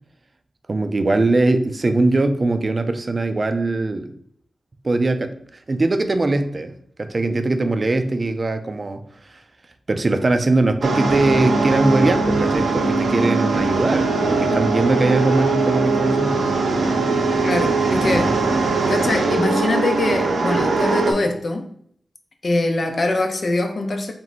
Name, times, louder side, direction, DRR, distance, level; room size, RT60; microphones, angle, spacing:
voice 1, 0.7-4.1 4.8-5.3 5.7-9.0 9.9-16.5, right 2 dB, 45° right, 0.4 m, -21 dB
sound 1, 10.8-21.1, right 3 dB, 85° right, 0.7 m, -20 dB
voice 2, 17.4-18.3 18.9-21.7 22.4-24.1, left 2 dB, 55° left, 0.7 m, -23 dB
3.5 x 3.1 x 4.0 m
cardioid pair, 60°, 0 cm